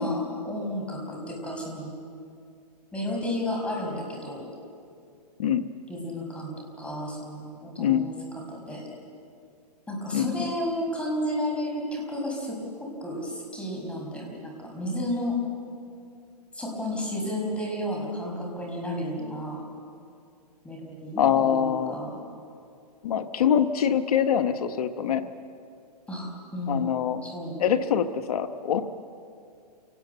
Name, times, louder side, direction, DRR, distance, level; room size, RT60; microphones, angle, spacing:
voice 1, 0.0-1.9 2.9-4.5 5.9-8.1 8.5-8.8 9.9-15.4 16.5-19.6 20.6-22.2 26.1-26.9 27.2-27.6, left 1 dB, 5° left, -1 dB, 5.5 m, -32 dB
voice 2, 7.8-8.1 10.1-10.5 21.2-22.0 23.0-25.3 26.7-27.2 27.6-28.8, left 8 dB, 65° left, 10 dB, 1.2 m, -24 dB
28.0 x 19.0 x 8.1 m, 2.4 s
hypercardioid pair, 140°, 21 cm